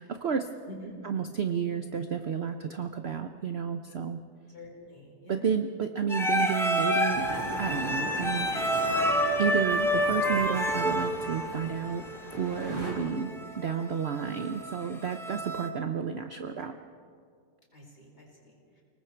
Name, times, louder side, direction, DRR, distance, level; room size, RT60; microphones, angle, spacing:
voice 1, 0.0-0.5 1.0-4.2 5.3-9.0 9.4-12.0 12.3-16.8, right 7 dB, 50° right, 7 dB, 0.8 m, -31 dB
voice 2, 4.5-5.5 15.3-15.4 16.6-16.7 17.7-18.8, left 1 dB, 35° left, -2 dB, 4.8 m, -48 dB
sound 1, 6.1-15.7, equal, ahead, 1.1 m, -29 dB
sound 2, 7.1-12.9, equal, 15° right, 4.5 m, -40 dB
29.5 x 19.5 x 4.6 m, 2.2 s
omnidirectional pair, 1.9 m